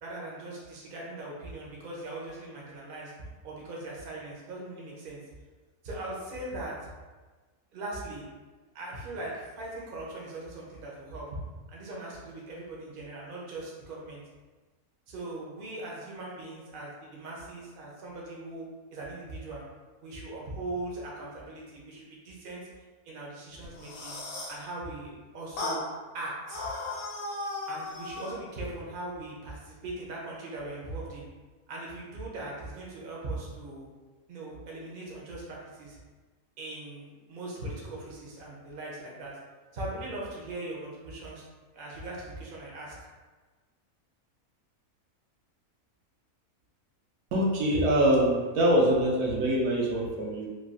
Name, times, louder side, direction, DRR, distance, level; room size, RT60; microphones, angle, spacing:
voice 1, 0.0-3.1 3.4-5.2 5.8-6.9 7.7-8.3 8.7-11.4 11.7-14.2 15.1-18.7 18.9-19.6 20.0-22.7 23.0-24.2 24.5-25.9 26.1-26.7 27.7-31.2 31.7-33.9 34.3-36.0 36.6-39.4 39.7-41.4 41.7-42.9, right 2 dB, 50° right, -4 dB, 0.7 m, -40 dB
sound 1, 23.6-24.6 25.6-25.8 26.5-28.4, left 2 dB, 65° left, 0.9 m, -36 dB
voice 2, 47.3-50.5, right 1 dB, 85° right, -2 dB, 1.1 m, -24 dB
3.1 x 2.3 x 2.4 m, 1.3 s
omnidirectional pair, 1.6 m